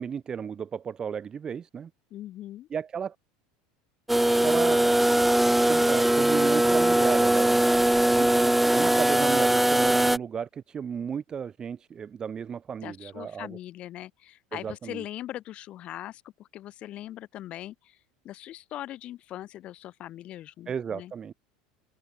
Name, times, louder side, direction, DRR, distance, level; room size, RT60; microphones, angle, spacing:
voice 1, 0.0-1.9 2.7-3.2 4.4-5.4 5.6-13.6 14.5-15.0 20.7-21.3, right 7 dB, 30° right, 2.6 m, -34 dB
voice 2, 2.1-2.7 12.8-21.1, left 13 dB, 45° left, 7.1 m, -41 dB
sound 1, 4.1-10.2, right 1 dB, 5° right, 1.3 m, -21 dB
supercardioid pair, 110°, 3 cm